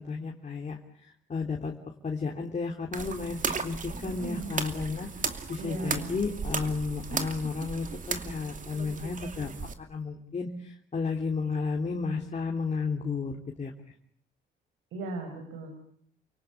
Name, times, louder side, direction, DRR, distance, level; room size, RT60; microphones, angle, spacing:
voice 1, 0.0-1.7 2.0-5.1 5.5-9.6 9.9-13.3 13.6-13.7, left 4 dB, 35° left, 1 dB, 3.1 m, -33 dB
sound 1, 2.9-9.7, right 5 dB, 40° right, 2.7 m, -35 dB
voice 2, 4.0-4.6 5.6-6.1 14.9-15.8, right 3 dB, 85° right, 3 dB, 6.1 m, -37 dB
29.5 x 18.5 x 9.6 m, 0.66 s
cardioid pair, 90°, 20 cm